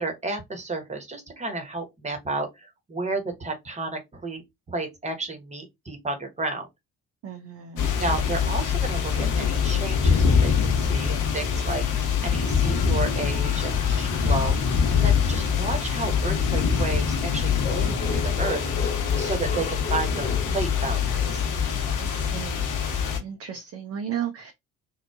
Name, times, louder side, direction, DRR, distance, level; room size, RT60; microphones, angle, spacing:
voice 1, 0.0-4.4 4.7-6.7 8.0-21.4, right 3 dB, 15° right, 1.0 m, -32 dB
voice 2, 7.2-7.8 22.0-22.6 23.2-24.5, right 9 dB, 35° right, 0.5 m, -34 dB
sound 1, 7.8-23.2, left 6 dB, 50° left, 0.9 m, -24 dB
sound 2, 17.6-21.3, left 4 dB, 20° left, 0.6 m, -35 dB
3.0 x 2.1 x 2.3 m
figure-of-eight pair, 45°, 40 cm